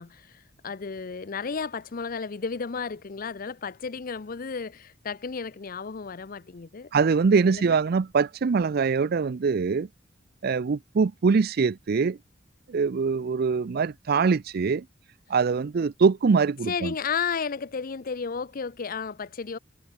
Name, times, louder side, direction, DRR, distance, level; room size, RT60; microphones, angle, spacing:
voice 1, 0.0-6.9 7.5-7.8 16.7-19.6, left 5 dB, 50° left, 0.6 m, -33 dB
voice 2, 6.9-9.9 10.4-12.2 12.7-14.9 15.3-16.9, right 5 dB, 55° right, 0.4 m, -23 dB
head